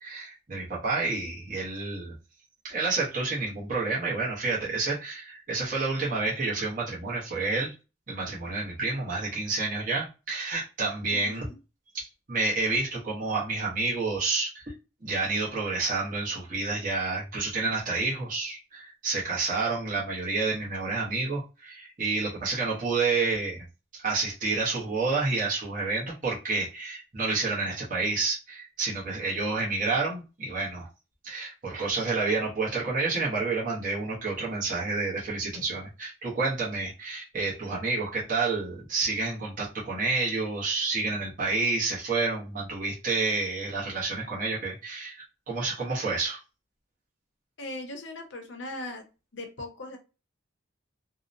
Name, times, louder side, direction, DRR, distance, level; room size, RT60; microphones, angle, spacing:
voice 1, 0.0-2.1 2.6-7.7 8.1-11.5 11.9-14.7 15.0-23.6 23.9-30.9 31.2-46.4, right 3 dB, 40° right, 0.8 m, -29 dB
voice 2, 11.1-11.6 47.6-49.0 49.3-50.0, left 2 dB, 60° left, 0.7 m, -39 dB
2.7 x 2.1 x 2.5 m
head